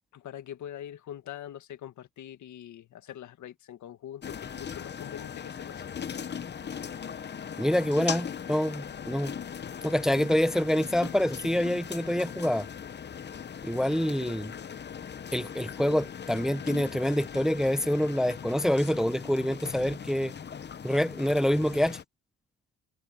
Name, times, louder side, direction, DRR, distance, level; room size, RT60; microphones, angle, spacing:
voice 1, 0.1-6.0 14.1-14.6 15.8-16.0, left 11 dB, 75° left, 2.0 m, -44 dB
sound 1, 4.2-22.0, left 7 dB, 35° left, 0.9 m, -39 dB
voice 2, 7.6-9.3 9.8-12.7 13.6-14.5 15.3-20.3 20.8-22.0, equal, ahead, 0.7 m, -26 dB
cardioid pair, 90°, 30 cm